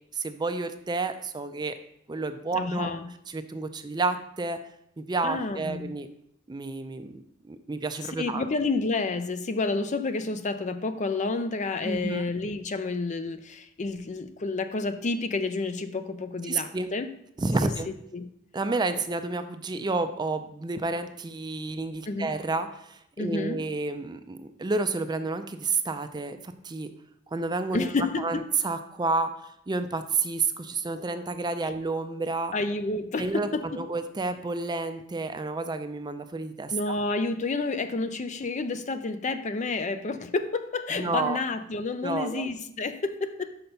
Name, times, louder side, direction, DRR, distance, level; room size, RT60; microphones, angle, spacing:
voice 1, 0.1-1.7 2.1-2.9 3.3-4.6 5.0-6.1 6.5-8.5 11.8-12.2 16.5-16.9 17.4-17.9 18.5-26.9 27.3-32.5 33.2-37.0 40.9-41.4 42.0-42.5, right 3 dB, 20° right, 9 dB, 0.4 m, -30 dB
voice 2, 2.5-3.1 5.2-5.9 8.2-17.1 17.6-17.7 18.1-18.3 22.1-22.3 23.2-23.7 27.7-28.5 32.5-33.8 36.7-43.6, left 3 dB, 40° left, 10 dB, 0.5 m, -30 dB
5.7 x 5.6 x 5.3 m, 0.72 s
head